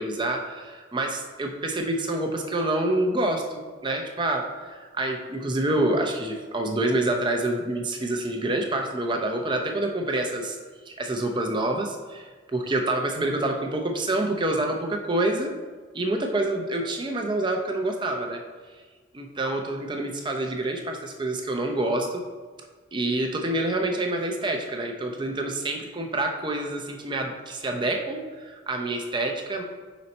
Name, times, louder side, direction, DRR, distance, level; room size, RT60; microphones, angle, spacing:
voice 1, 0.0-10.6 10.9-15.5 15.9-18.4 19.1-22.2 22.9-29.6, right 2 dB, 25° right, 2 dB, 0.5 m, -27 dB
5.4 x 4.1 x 4.2 m, 1.5 s
head